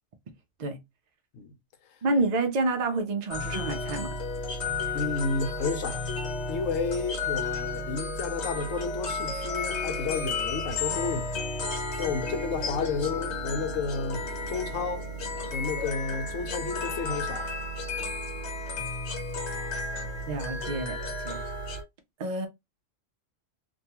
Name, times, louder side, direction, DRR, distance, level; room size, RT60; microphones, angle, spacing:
voice 1, 2.0-4.1 20.3-21.0 21.2-21.4 22.2-22.5, right 2 dB, 70° right, 0.4 m, -28 dB
sound 1, 3.3-21.8, left 2 dB, 65° left, 1.0 m, -33 dB
voice 2, 4.9-6.0 6.5-11.3 12.0-15.0 15.5-17.5 19.5-19.7, left 4 dB, 85° left, 1.0 m, -31 dB
2.6 x 2.2 x 2.8 m
omnidirectional pair, 1.3 m